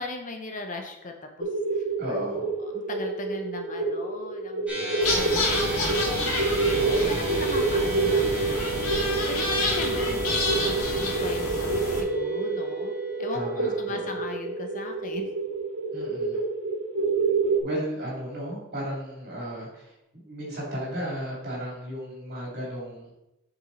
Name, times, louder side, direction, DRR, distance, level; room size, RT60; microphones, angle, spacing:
voice 1, 0.0-1.9 2.3-6.8 7.1-8.7 9.3-10.7 11.0-15.3, left 2 dB, 35° left, 4 dB, 0.7 m, -38 dB
sound 1, 1.4-17.6, right 3 dB, 75° right, 2.0 m, -28 dB
voice 2, 2.0-2.4 6.7-7.2 13.3-14.2 15.9-16.4 17.6-23.1, equal, 45° right, -4 dB, 3.0 m, -34 dB
sound 2, 4.7-17.2, right 3 dB, 5° right, 2.1 m, -35 dB
sound 3, 5.0-12.0, left 2 dB, 80° left, 1.8 m, -29 dB
7.0 x 5.4 x 4.2 m, 0.88 s
head